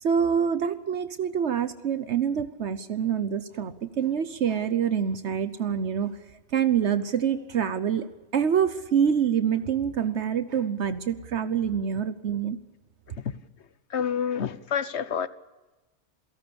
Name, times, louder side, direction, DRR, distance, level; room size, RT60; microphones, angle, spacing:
voice 1, 0.0-6.2 6.5-12.6, right 8 dB, 70° right, 11 dB, 1.2 m, -26 dB
voice 2, 13.9-15.3, left 7 dB, 70° left, 14 dB, 1.3 m, -28 dB
27.5 x 18.0 x 7.0 m, 1.1 s
omnidirectional pair, 1.2 m